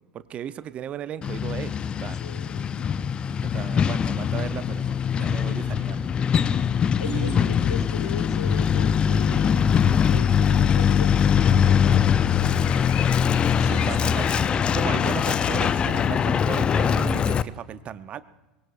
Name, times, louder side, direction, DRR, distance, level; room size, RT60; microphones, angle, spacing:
voice 1, 0.1-1.7 2.0-2.2 3.4-6.1 6.4-6.5 7.0-7.8 13.6-14.4 14.7-18.2, right 9 dB, 35° right, 14 dB, 0.7 m, -35 dB
Truck, 1.2-17.4, left 7 dB, 25° left, 0.5 m, -22 dB
voice 2, 2.1-2.9 7.0-9.7 10.0-12.6, left 7 dB, 75° left, 8 dB, 1.4 m, -39 dB
sound 1, 10.7-16.0, left 13 dB, 50° left, 0.8 m, -41 dB
23.0 x 21.0 x 2.5 m, 1.2 s
figure-of-eight pair, 80°, 4 cm